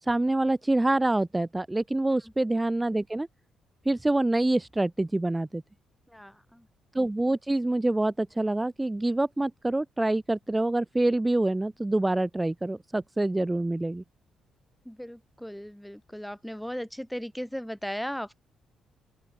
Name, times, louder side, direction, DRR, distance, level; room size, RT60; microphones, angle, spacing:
voice 1, 0.0-3.3 3.8-5.6 6.9-14.0, right 2 dB, 15° right, 2.0 m, -26 dB
voice 2, 6.1-6.7 14.8-18.4, equal, ahead, 4.3 m, -37 dB
open air
cardioid pair, 90°, 0 cm